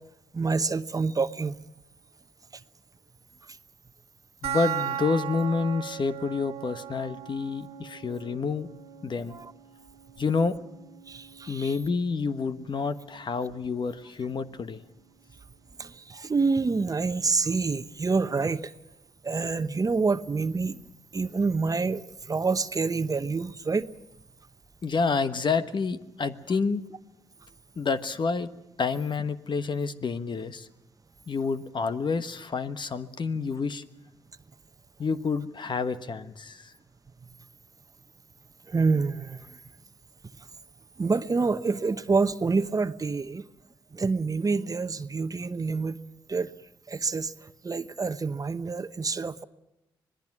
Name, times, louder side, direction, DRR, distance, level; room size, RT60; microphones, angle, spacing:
voice 1, 0.3-1.5 9.3-9.5 11.1-11.7 15.8-18.7 19.2-20.8 21.1-23.8 38.7-39.6 41.0-43.4 43.9-46.0 46.3-46.5 46.9-47.3 47.6-49.4, right 4 dB, 35° right, 12 dB, 1.0 m, -27 dB
voice 2, 4.4-8.7 9.0-9.4 10.2-10.6 11.5-14.8 24.8-26.8 27.8-28.5 28.8-30.7 31.3-33.8 35.0-36.7, left 4 dB, 45° left, 11 dB, 1.3 m, -28 dB
sound 1, 4.4-15.4, right 11 dB, 80° right, 1.7 m, -39 dB
26.0 x 19.5 x 6.1 m, 0.92 s
hypercardioid pair, 45°, 11 cm